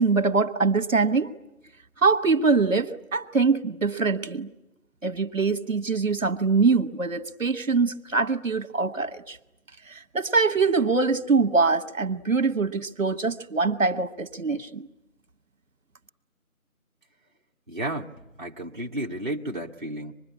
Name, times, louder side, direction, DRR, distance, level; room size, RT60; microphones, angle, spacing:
voice 1, 0.0-1.3 2.0-4.5 5.0-9.4 9.9-14.9, right 4 dB, 65° right, 11 dB, 1.4 m, -23 dB
voice 2, 17.7-18.1 18.4-20.1, right 1 dB, 35° right, -3 dB, 1.0 m, -32 dB
25.5 x 21.5 x 9.8 m, 0.94 s
figure-of-eight pair, 170°, 43 cm